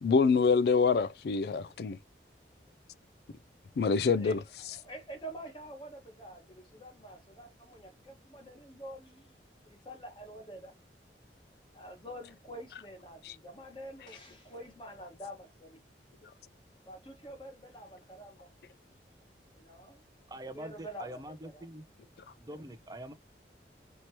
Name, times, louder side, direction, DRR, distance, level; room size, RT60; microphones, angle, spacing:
voice 1, 0.0-2.0 3.8-4.4 13.3-13.4, left 5 dB, 60° left, 0.3 m, -25 dB
voice 2, 4.6-9.4 9.6-10.7 11.7-15.8 16.8-18.5 19.5-20.0 20.5-21.7, right 1 dB, 25° left, 1.5 m, -47 dB
voice 3, 20.3-21.8 22.4-23.1, right 1 dB, 20° right, 0.6 m, -44 dB
4.5 x 3.0 x 2.9 m
head